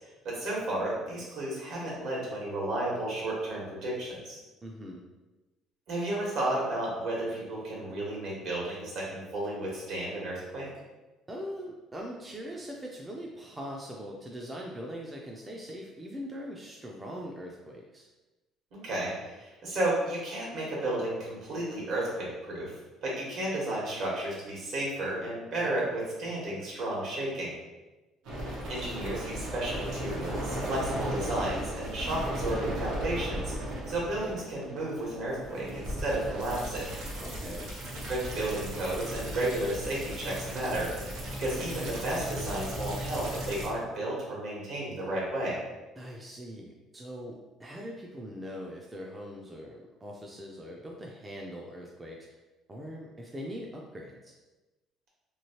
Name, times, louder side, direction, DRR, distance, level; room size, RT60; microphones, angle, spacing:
voice 1, 0.2-4.4 5.9-10.7 18.7-22.8 23.0-27.5 28.7-36.9 38.1-41.1 41.4-45.6, right 1 dB, 65° right, -5 dB, 1.3 m, -33 dB
voice 2, 4.6-5.0 11.3-18.1 37.2-37.7 46.0-52.3 52.7-54.3, equal, 15° right, -1 dB, 0.4 m, -41 dB
sound 1, 28.3-43.7, equal, 85° right, 0.9 m, -36 dB
3.0 x 2.7 x 2.8 m, 1.1 s
cardioid pair, 120°, 0 cm